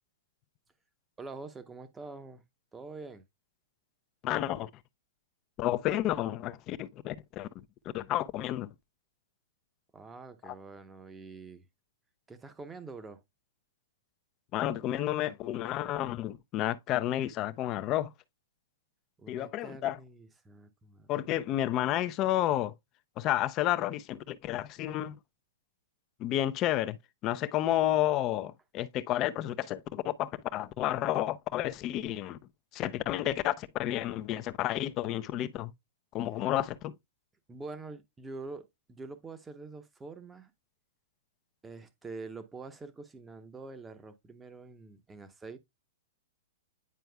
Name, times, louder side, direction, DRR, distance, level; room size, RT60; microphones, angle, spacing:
voice 1, 1.2-2.4 2.7-3.2 9.9-11.7 12.3-13.2 19.2-21.1 37.5-40.5 41.6-45.6, right 3 dB, 10° right, 0.8 m, -45 dB
voice 2, 4.2-4.7 5.6-7.5 7.9-8.7 10.4-10.5 14.5-18.1 19.3-20.0 21.1-22.7 23.2-25.1 26.2-27.0 27.2-32.4 32.7-35.7 36.1-36.9, left 13 dB, 30° left, 0.5 m, -31 dB
9.3 x 4.5 x 2.2 m
hypercardioid pair, 140°, 0 cm